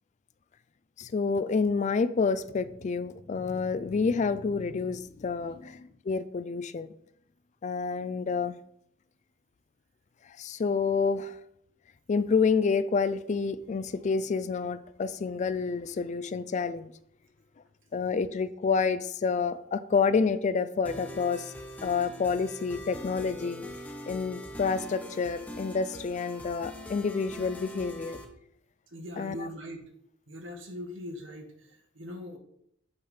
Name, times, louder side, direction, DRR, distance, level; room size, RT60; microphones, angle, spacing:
voice 1, 1.0-6.9 7.6-8.5 10.4-11.4 12.1-16.9 17.9-21.5 21.8-23.6 24.1-28.2 29.2-29.5, left 5 dB, 40° left, 14 dB, 0.3 m, -28 dB
sound 1, 20.9-28.2, left 1 dB, 10° left, 0.9 m, -42 dB
voice 2, 28.9-29.8 30.3-32.4, left 1 dB, 75° right, 3 dB, 1.4 m, -41 dB
8.1 x 3.5 x 5.5 m, 0.73 s
head